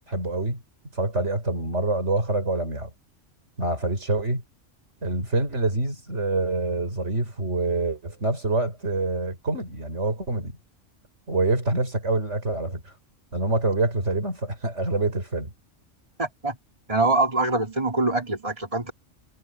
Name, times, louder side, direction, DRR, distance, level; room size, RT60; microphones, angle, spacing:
voice 1, 0.1-0.6 0.9-2.9 3.6-4.4 5.0-10.5 11.3-12.8 13.3-15.5, right 2 dB, 70° right, 5.3 m, -26 dB
voice 2, 16.2-16.6 16.9-18.9, right 2 dB, 30° right, 3.8 m, -24 dB
omnidirectional pair, 1.2 m